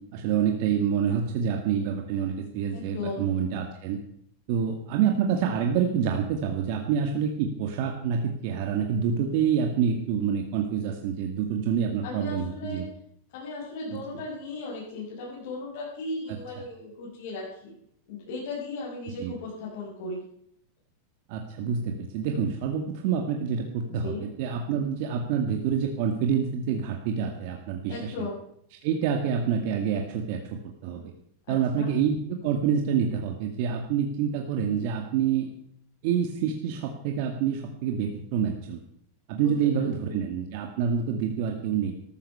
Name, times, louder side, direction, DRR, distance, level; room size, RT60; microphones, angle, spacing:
voice 1, 0.1-4.0 4.5-12.8 14.1-14.2 19.2-19.3 21.3-28.3 28.8-30.4 30.8-31.1 31.5-35.5 36.0-38.8 39.3-41.9, right 7 dB, 55° right, 2 dB, 2.0 m, -27 dB
voice 2, 2.7-3.2 12.0-12.8 13.3-17.7 18.1-20.2 24.0-24.3 27.9-28.4 31.5-31.9 39.4-39.5 40.1-40.2, left 3 dB, 60° left, -7 dB, 6.4 m, -36 dB
14.0 x 13.5 x 5.6 m, 0.69 s
supercardioid pair, 145°, 0 cm